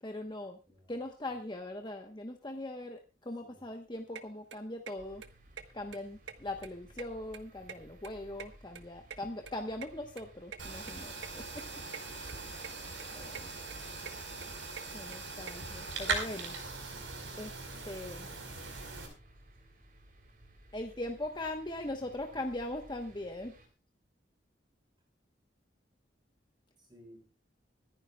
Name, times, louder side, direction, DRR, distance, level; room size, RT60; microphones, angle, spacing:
voice 1, 0.0-0.6 0.9-5.2 5.7-11.6 12.0-12.5 13.1-13.5 14.9-16.6 17.3-17.5 17.8-18.3 20.7-23.5, left 1 dB, 25° left, 4 dB, 1.1 m, -40 dB
sound 1, 4.2-4.3 4.5-4.9 5.2-5.3 5.6-5.7 5.9-6.7 6.9-8.1 8.4-9.9 10.2-10.3 10.5-10.6 10.9-11.0 11.2-11.3 11.6-12.0 12.3-12.7 13.0-13.4 13.7-15.5, right 7 dB, 70° right, 1.2 m, -45 dB
sound 2, 5.0-23.7, equal, 45° right, 3.4 m, -57 dB
sound 3, 10.6-19.1, right 4 dB, 90° right, 4.6 m, -40 dB
voice 2, 13.0-13.5 26.8-27.3, equal, 25° right, 2 dB, 6.0 m, -58 dB
24.5 x 10.5 x 2.3 m, 0.30 s
head